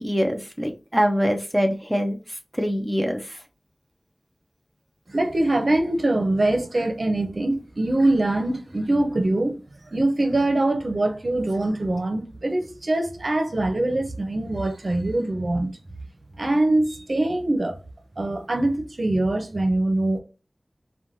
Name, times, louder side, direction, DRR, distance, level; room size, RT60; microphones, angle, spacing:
voice 1, 0.0-3.4, equal, ahead, 0.4 m, -24 dB
voice 2, 5.1-9.5 9.9-15.7 16.4-17.8 18.2-20.2, right 2 dB, 65° right, 0.6 m, -23 dB
3.0 x 2.2 x 2.6 m
wide cardioid pair, 60°, 0 cm